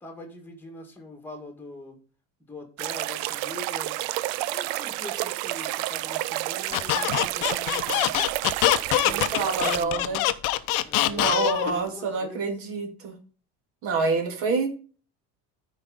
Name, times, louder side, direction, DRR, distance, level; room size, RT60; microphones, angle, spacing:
voice 1, 0.0-2.0 2.4-4.0 4.5-8.2 9.0-10.2 10.9-12.4, left 2 dB, 5° left, 3 dB, 1.9 m, -43 dB
sound 1, 2.8-9.8, right 17 dB, 85° right, 0.6 m, -30 dB
Squeak, 6.7-11.8, left 15 dB, 65° left, 0.8 m, -24 dB
voice 2, 9.0-10.2 11.1-13.1 13.8-14.7, right 4 dB, 40° right, 5 dB, 2.2 m, -27 dB
13.5 x 5.0 x 4.0 m, 0.38 s
cardioid pair, 175°, 33 cm